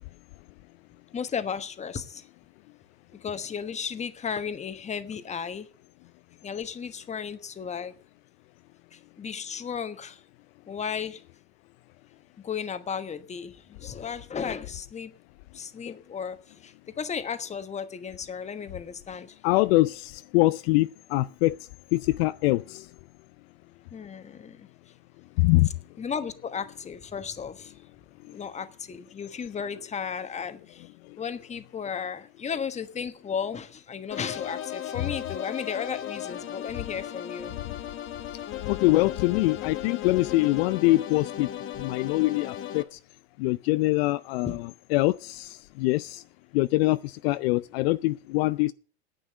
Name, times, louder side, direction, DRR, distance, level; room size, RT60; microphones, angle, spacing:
voice 1, 1.1-2.2 3.2-5.7 6.4-7.9 9.2-10.2 10.7-11.2 12.4-15.1 15.5-16.4 16.6-19.3 23.9-24.6 26.0-27.7 28.3-30.8 31.2-37.6 44.4-44.6, left 6 dB, 20° left, 1.3 m, -34 dB
voice 2, 19.4-21.6 21.9-22.8 25.4-25.7 38.7-41.5 41.8-43.0 43.4-46.2 46.5-48.7, left 20 dB, 60° left, 0.5 m, -24 dB
sound 1, 34.1-42.8, left 11 dB, 35° left, 1.2 m, -36 dB
10.0 x 8.7 x 8.9 m
supercardioid pair, 115°, 34 cm